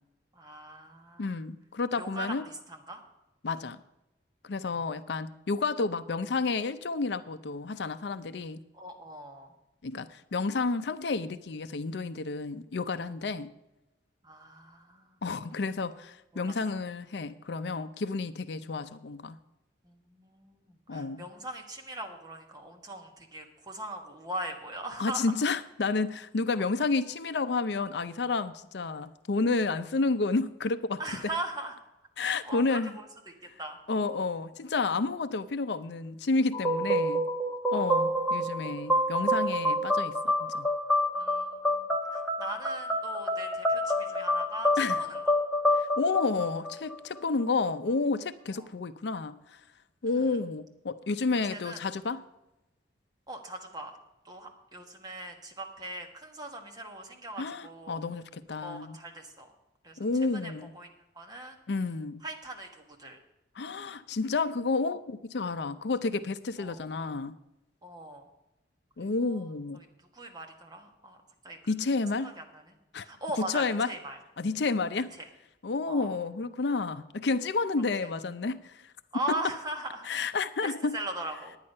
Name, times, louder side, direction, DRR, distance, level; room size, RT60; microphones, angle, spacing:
voice 1, 0.3-1.4 2.0-3.0 4.7-4.8 8.7-9.5 14.2-15.2 16.3-16.5 19.8-25.3 31.0-31.8 32.2-33.3 33.6-33.8 37.7-38.5 41.2-45.2 48.5-48.7 50.1-50.4 51.3-51.8 53.3-54.0 54.2-58.0 58.6-59.5 59.8-60.0 60.4-60.9 61.1-61.6 62.2-63.2 66.6-66.8 67.8-68.3 69.0-69.4 70.1-71.2 71.4-71.6 72.2-72.7 73.0-74.2 75.2-75.3 75.9-76.1 78.0-78.1 79.1-80.1 80.6-81.6, right 1 dB, 20° right, 3 dB, 1.4 m, -40 dB
voice 2, 1.2-2.4 3.4-3.8 4.4-8.6 9.8-13.5 15.2-19.4 20.9-21.3 25.0-31.0 32.2-32.9 33.9-37.2 37.7-40.2 40.5-40.7 44.8-45.0 46.0-49.4 50.0-52.2 57.4-59.0 60.0-60.7 61.7-62.2 63.6-67.3 69.0-69.8 71.7-72.3 72.9-73.1 73.4-73.9 74.4-75.1 75.6-78.8 79.3-79.4 80.1-81.0, left 3 dB, 65° left, 12 dB, 0.5 m, -30 dB
sound 1, 36.5-47.2, equal, ahead, 1.3 m, -28 dB
10.0 x 9.7 x 5.4 m, 0.95 s
head